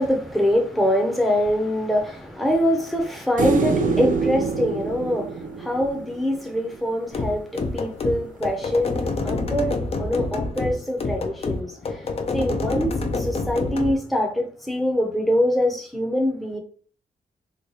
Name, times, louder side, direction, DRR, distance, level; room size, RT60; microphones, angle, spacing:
voice 1, 0.0-16.6, equal, ahead, 0.6 m, -24 dB
sound 1, 3.4-6.6 9.2-9.3, right 4 dB, 65° right, 0.5 m, -25 dB
sound 2, 7.1-14.0, left 3 dB, 40° left, 0.5 m, -27 dB
3.1 x 2.2 x 3.9 m
wide cardioid pair, 120°, 15 cm